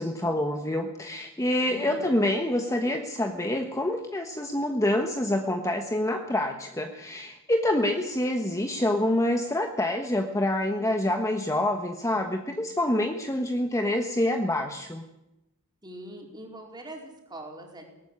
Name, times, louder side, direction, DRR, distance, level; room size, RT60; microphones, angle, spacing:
voice 1, 0.0-15.0, left 1 dB, 15° left, 4 dB, 1.3 m, -27 dB
voice 2, 1.7-2.1 15.8-17.8, right 1 dB, 20° right, 1 dB, 4.7 m, -42 dB
19.0 x 14.5 x 9.9 m, 0.91 s
head